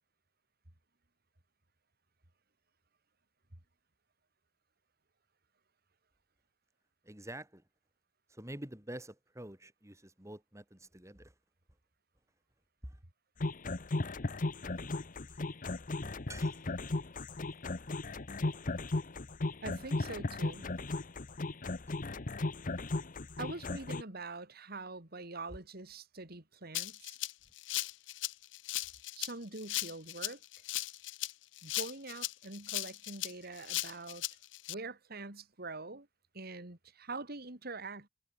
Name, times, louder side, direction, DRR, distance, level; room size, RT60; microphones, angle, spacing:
voice 1, 7.0-7.6 8.3-11.3 12.8-13.0 15.3-15.4 16.3-16.7 21.9-22.0, right 1 dB, 15° right, 3.7 m, -47 dB
sound 1, 13.4-24.0, left 2 dB, 45° left, 1.0 m, -36 dB
voice 2, 19.6-20.7 23.4-27.2 29.2-30.4 31.6-34.2 34.7-36.1 36.3-38.1, right 3 dB, 55° right, 3.2 m, -44 dB
Rattle (instrument), 26.7-34.7, left 17 dB, 70° left, 0.5 m, -38 dB
head